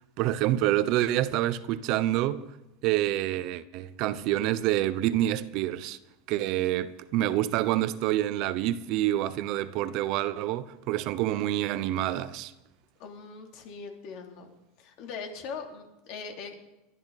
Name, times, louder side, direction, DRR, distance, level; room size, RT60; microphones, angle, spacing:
voice 1, 0.2-2.5 2.8-6.0 6.3-12.5, right 14 dB, 55° right, 0.8 m, -27 dB
voice 2, 13.0-14.5 14.8-16.6, left 5 dB, 60° left, 3.2 m, -41 dB
21.5 x 13.0 x 4.2 m
supercardioid pair, 120°, 0 cm